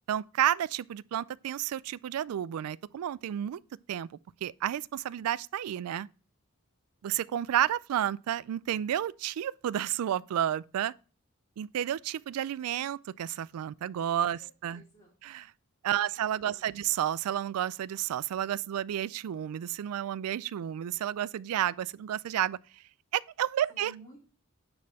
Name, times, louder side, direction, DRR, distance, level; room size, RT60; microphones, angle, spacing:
voice 1, 0.1-3.6 3.9-4.1 4.4-6.1 7.0-10.9 11.6-14.8 15.2-15.5 15.8-22.6 23.1-23.9, right 11 dB, 85° right, 0.3 m, -31 dB
voice 2, 14.2-15.1 15.9-16.9 23.7-24.2, right 3 dB, 35° left, 2.5 m, -56 dB
9.6 x 4.3 x 4.1 m
head